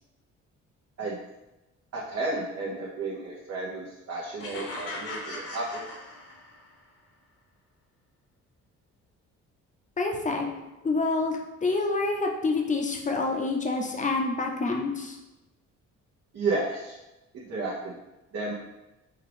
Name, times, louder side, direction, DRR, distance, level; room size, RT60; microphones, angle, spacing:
voice 1, 1.9-5.8 16.3-17.0 17.3-18.0 18.3-18.5, right 3 dB, 55° right, -6 dB, 0.9 m, -32 dB
sound 1, 4.4-6.7, left 2 dB, 50° left, 0.9 m, -38 dB
voice 2, 10.0-10.5 10.8-15.2, left 3 dB, 25° left, 2 dB, 0.7 m, -27 dB
4.5 x 2.4 x 3.4 m, 1.0 s
cardioid pair, 90°, 30 cm